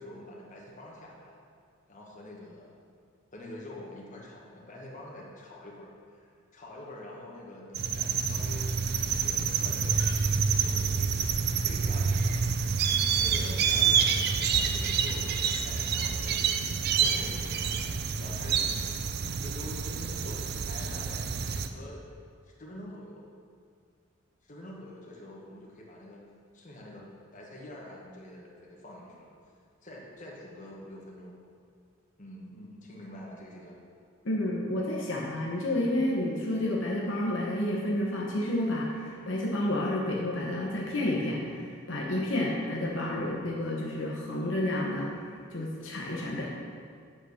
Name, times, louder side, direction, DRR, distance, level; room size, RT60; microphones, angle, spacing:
voice 1, 0.0-1.4 1.9-2.7 3.3-6.3 6.5-8.7 9.1-10.2 10.5-12.4 13.2-17.9 18.2-18.8 19.4-22.0 22.4-23.3 24.4-26.3 26.5-29.3 29.8-31.4 32.2-33.8, left 1 dB, 40° left, -3 dB, 1.3 m, -46 dB
sound 1, 7.7-21.7, right 6 dB, 50° right, 0.4 m, -28 dB
voice 2, 34.2-45.2 45.5-46.5, left 1 dB, 65° left, -3 dB, 1.1 m, -30 dB
7.9 x 4.4 x 6.5 m, 2.2 s
head